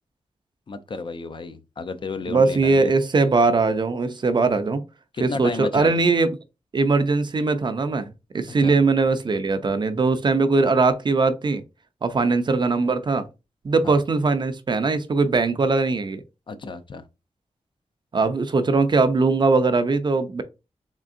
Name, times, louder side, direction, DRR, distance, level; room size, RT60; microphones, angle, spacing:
voice 1, 0.7-2.9 5.1-5.9 8.5-8.8 13.8-14.0 16.5-17.1, left 4 dB, 45° left, 0.4 m, -32 dB
voice 2, 2.3-4.8 5.2-6.3 6.7-11.6 12.0-13.2 13.6-16.2 18.1-20.4, right 3 dB, 40° right, 0.4 m, -20 dB
3.7 x 3.3 x 2.5 m
wide cardioid pair, 120°, 12 cm